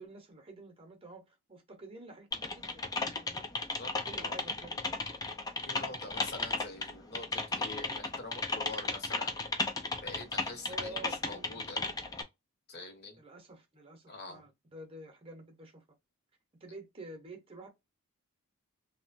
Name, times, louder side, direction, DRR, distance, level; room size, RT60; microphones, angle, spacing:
voice 1, 0.0-2.8 3.1-3.5 4.0-5.1 10.7-12.2 13.2-15.8 16.6-17.7, right 1 dB, 25° right, 0.8 m, -49 dB
Typing, 2.3-12.2, left 3 dB, 15° left, 0.3 m, -35 dB
voice 2, 3.8-4.8 5.6-9.3 10.0-11.9 12.7-13.2 14.1-14.4, left 2 dB, 45° left, 0.9 m, -46 dB
2.9 x 2.1 x 2.5 m
head